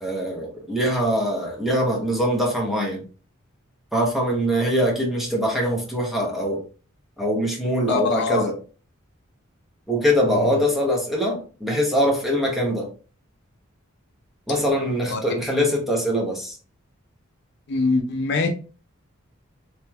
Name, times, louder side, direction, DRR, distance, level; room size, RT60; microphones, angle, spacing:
voice 1, 0.0-3.0 3.9-6.6 7.2-8.6 9.9-12.9 14.5-16.5, equal, ahead, -2 dB, 0.8 m, -23 dB
voice 2, 7.9-8.5 15.1-15.2 17.7-18.5, left 4 dB, 55° left, 4 dB, 0.5 m, -23 dB
3.1 x 3.1 x 2.2 m, 0.36 s
head